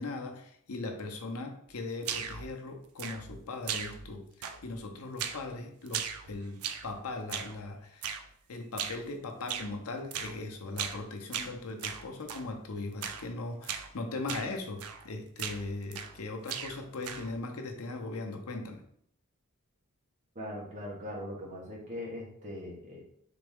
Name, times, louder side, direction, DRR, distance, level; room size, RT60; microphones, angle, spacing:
voice 1, 0.0-8.1 8.5-18.8, left 3 dB, 75° left, 4 dB, 0.7 m, -39 dB
sound 1, 2.0-2.5 3.0-3.4 3.7-4.1 4.4-4.8 5.2-5.5 5.9-6.9 7.3-7.6 8.0-8.3 8.8-9.1 9.5-9.7 10.1-10.4 10.8-11.0 11.3-12.5 13.0-13.3 13.6-13.9 14.3-14.5 14.8-15.1 15.4-16.2 16.5-17.4, right 8 dB, 85° right, 0.5 m, -38 dB
voice 2, 20.3-23.0, left 1 dB, 35° right, -3 dB, 1.3 m, -40 dB
4.1 x 3.4 x 3.5 m, 0.67 s
head